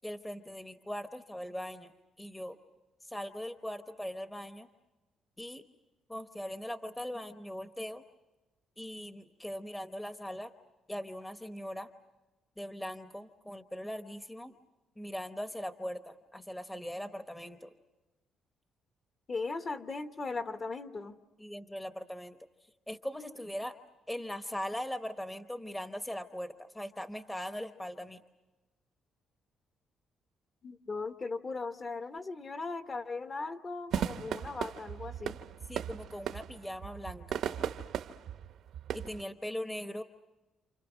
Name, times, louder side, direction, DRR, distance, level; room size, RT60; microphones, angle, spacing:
voice 1, 0.0-1.9 2.2-2.6 3.0-4.7 5.4-5.6 6.1-8.0 8.8-10.5 10.9-11.9 12.6-14.5 15.0-17.7 21.4-22.4 22.9-23.8 24.1-28.2 35.7-37.4 38.9-40.0, equal, 10° left, 8 dB, 1.0 m, -40 dB
voice 2, 19.3-21.2 30.6-35.4, left 3 dB, 35° left, 8 dB, 1.2 m, -38 dB
sound 1, 33.9-39.2, right 9 dB, 70° right, 0.9 m, -37 dB
29.0 x 28.5 x 6.2 m, 1.1 s
cardioid pair, 135°, 0 cm